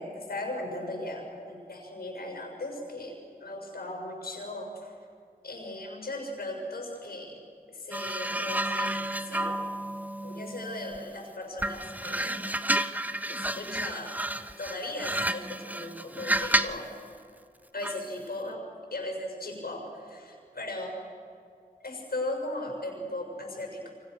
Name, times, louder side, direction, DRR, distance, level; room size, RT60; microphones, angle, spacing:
voice 1, 0.0-5.0 5.4-7.3 7.7-9.5 10.2-12.4 13.3-14.2 14.6-16.9 17.7-18.6 18.9-20.9 21.8-23.9, left 1 dB, 90° left, 2 dB, 6.6 m, -37 dB
sound 1, 7.9-11.1 11.6-16.9 17.8-18.1, right 1 dB, 10° right, 1.0 m, -31 dB
29.5 x 25.5 x 6.6 m, 2.5 s
wide cardioid pair, 55°, 15 cm